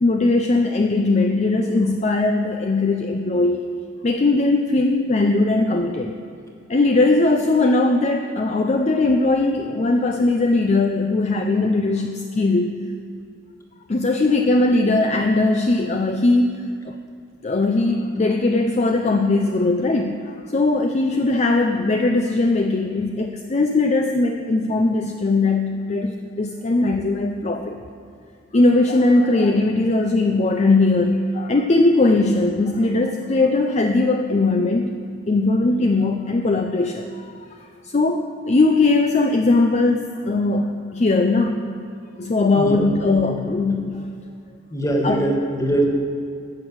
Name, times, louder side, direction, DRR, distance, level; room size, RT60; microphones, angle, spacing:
voice 1, 0.0-3.7 4.0-6.1 6.7-12.8 13.9-16.5 16.8-17.0 17.4-27.8 28.5-34.9 35.3-37.3 37.8-41.7 42.2-43.9 45.0-45.3, left 2 dB, 35° left, 4 dB, 0.5 m, -19 dB
voice 2, 42.5-42.9 43.2-43.8 44.7-45.9, right 1 dB, 15° left, 1 dB, 1.4 m, -23 dB
10.5 x 6.3 x 7.8 m, 2.4 s
head